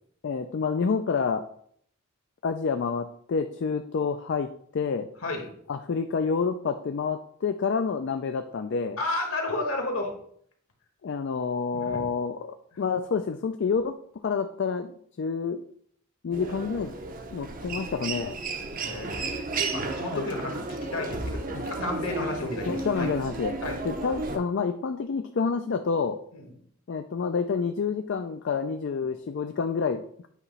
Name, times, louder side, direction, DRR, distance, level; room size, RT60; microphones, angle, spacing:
voice 1, 0.2-1.4 2.4-5.1 5.7-9.0 11.0-13.9 14.2-14.9 15.2-15.6 16.2-16.9 17.3-18.4 20.1-20.3 21.5-21.6 22.7-23.5 23.8-26.2 26.9-30.3, left 5 dB, 55° left, 8 dB, 0.4 m, -28 dB
voice 2, 9.0-10.1 11.7-12.0 12.7-12.8 18.8-19.4 19.7-21.4 21.7-23.1 23.6-23.7 26.3-26.5, left 2 dB, 70° left, 2 dB, 1.6 m, -32 dB
Human voice, 16.3-24.4, right 3 dB, 40° right, 0.7 m, -33 dB
8.2 x 3.0 x 5.4 m, 0.64 s
head